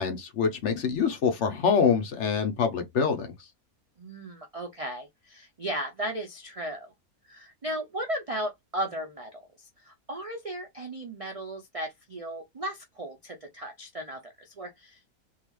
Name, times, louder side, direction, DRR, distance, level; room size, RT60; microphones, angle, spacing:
voice 1, 0.0-3.3, left 6 dB, 55° left, 1.0 m, -25 dB
voice 2, 4.0-6.9 7.3-15.2, right 1 dB, 65° right, 0.3 m, -36 dB
3.7 x 2.4 x 3.1 m
omnidirectional pair, 1.5 m